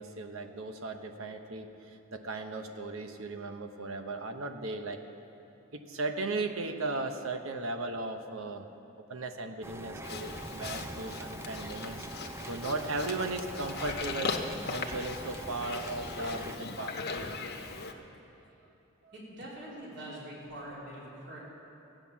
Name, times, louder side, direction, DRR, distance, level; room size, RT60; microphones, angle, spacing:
voice 1, 0.0-5.0 5.7-8.7 9.1-17.0 19.0-19.1, right 2 dB, 80° right, 6 dB, 0.9 m, -37 dB
sound 1, 9.6-16.6, right 1 dB, 10° right, 0.3 m, -43 dB
Livestock farm animals working animals, 10.0-17.9, left 4 dB, 50° left, 1.0 m, -39 dB
voice 2, 19.1-21.4, right 1 dB, 55° right, -6 dB, 3.4 m, -44 dB
15.5 x 9.0 x 7.1 m, 2.9 s
head